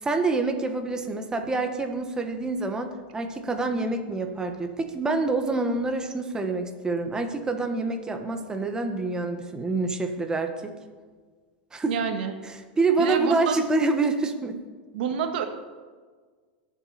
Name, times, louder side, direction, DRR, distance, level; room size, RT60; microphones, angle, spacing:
voice 1, 0.0-10.8 11.7-11.9 12.5-14.6, right 3 dB, 15° right, 5 dB, 1.5 m, -27 dB
voice 2, 11.9-12.3 13.0-13.6 14.9-15.5, right 7 dB, 70° right, 6 dB, 1.7 m, -28 dB
21.5 x 7.5 x 4.3 m, 1.5 s
hypercardioid pair, 125°, 5 cm